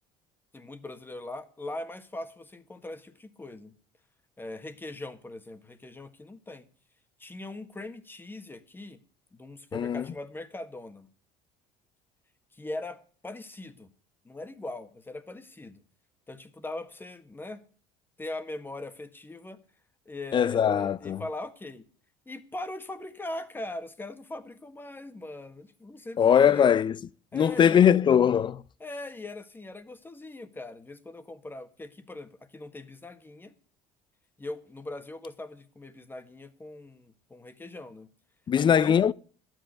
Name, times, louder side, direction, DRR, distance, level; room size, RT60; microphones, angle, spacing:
voice 1, 0.5-3.7 4.4-6.7 7.2-9.0 9.3-11.1 12.5-13.9 14.2-15.8 16.3-17.7 18.2-19.6 20.0-21.8 22.2-26.7 27.3-27.9 28.8-33.5 34.4-38.1 38.6-39.0, left 2 dB, 15° left, 1.5 m, -40 dB
voice 2, 9.7-10.0 20.3-21.2 26.2-27.0 27.3-28.6 38.5-39.1, left 8 dB, 35° left, 0.5 m, -21 dB
12.5 x 9.1 x 8.2 m
supercardioid pair, 95°, 14 cm